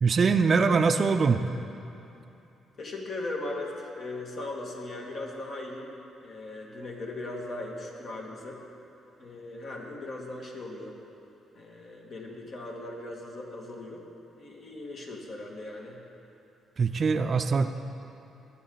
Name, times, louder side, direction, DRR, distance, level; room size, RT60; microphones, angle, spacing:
voice 1, 0.0-1.4 16.8-17.7, right 5 dB, 45° right, 8 dB, 0.5 m, -23 dB
voice 2, 2.8-5.9 6.2-8.6 9.2-11.0 11.5-14.0 14.4-16.0, left 2 dB, 55° left, -1 dB, 2.2 m, -38 dB
19.5 x 8.4 x 4.0 m, 2.9 s
cardioid pair, 90°, 0 cm